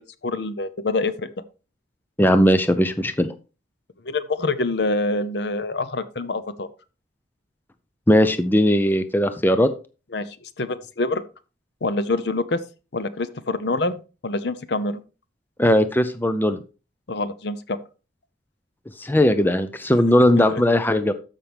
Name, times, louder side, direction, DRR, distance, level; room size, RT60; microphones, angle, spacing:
voice 1, 0.0-1.3 4.0-6.7 10.1-11.2 11.8-12.6 12.9-13.9 14.2-15.0 17.1-17.8 20.5-20.6, left 2 dB, 60° left, 13 dB, 0.7 m, -26 dB
voice 2, 2.2-3.3 8.1-9.7 15.6-16.6 19.0-21.1, left 1 dB, 10° left, 10 dB, 0.6 m, -18 dB
13.0 x 5.9 x 3.4 m, 0.33 s
head